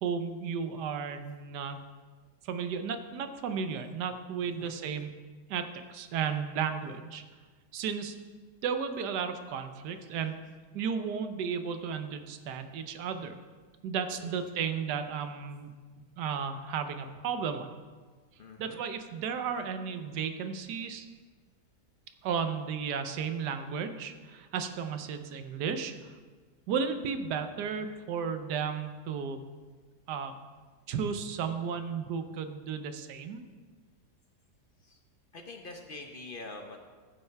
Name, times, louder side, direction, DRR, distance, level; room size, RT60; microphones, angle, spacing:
voice 1, 0.0-1.8 2.4-5.2 5.5-7.2 7.7-8.1 8.6-10.4 10.7-13.3 13.8-15.7 16.2-17.7 18.6-21.1 22.2-26.1 26.7-29.4 30.1-30.3 30.9-33.4, right 6 dB, 80° right, 9 dB, 1.3 m, -34 dB
voice 2, 4.4-4.7 14.2-14.7 18.4-18.8 34.8-35.0 35.3-36.8, left 3 dB, 50° left, 3 dB, 0.7 m, -45 dB
14.5 x 5.5 x 4.6 m, 1.5 s
omnidirectional pair, 1.8 m